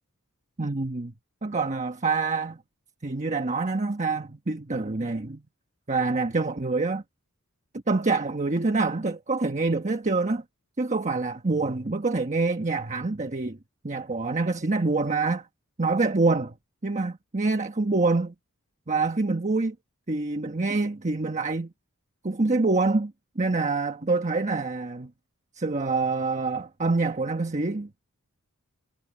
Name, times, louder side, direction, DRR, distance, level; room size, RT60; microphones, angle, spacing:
voice 1, 0.6-1.1 1.4-2.6 3.0-5.4 5.9-7.0 7.9-10.4 10.8-13.6 13.8-15.5 15.8-16.5 16.8-18.3 18.9-19.7 20.1-21.7 22.2-25.1 25.6-27.9, right 3 dB, 35° right, 1.2 m, -26 dB
head